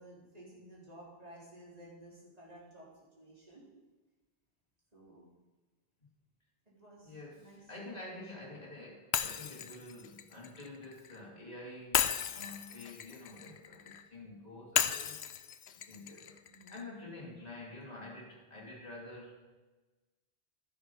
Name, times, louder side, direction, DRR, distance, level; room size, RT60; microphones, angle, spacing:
voice 1, 0.0-2.9 3.2-3.8 4.9-5.3 6.7-7.6 8.3-8.5 16.5-16.8, right 1 dB, 35° right, -5 dB, 4.2 m, -54 dB
voice 2, 7.0-15.2 15.9-16.4 16.7-19.5, left 2 dB, 40° left, -3 dB, 2.8 m, -48 dB
Shatter, 9.1-11.2 11.9-14.0 14.8-16.8, left 9 dB, 85° left, 0.9 m, -35 dB
12.5 x 10.0 x 5.5 m, 1.2 s
omnidirectional pair, 1.1 m